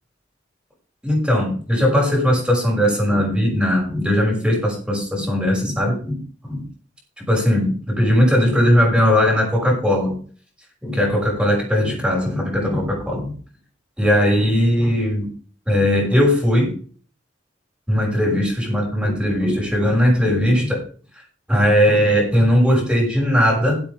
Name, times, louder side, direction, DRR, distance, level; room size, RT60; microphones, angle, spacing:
voice 1, 1.0-6.7 7.2-10.2 10.8-13.3 14.0-15.3 15.7-16.7 17.9-20.8 21.5-23.8, equal, 5° right, -2 dB, 6.4 m, -18 dB
16.5 x 8.3 x 3.8 m, 0.42 s
head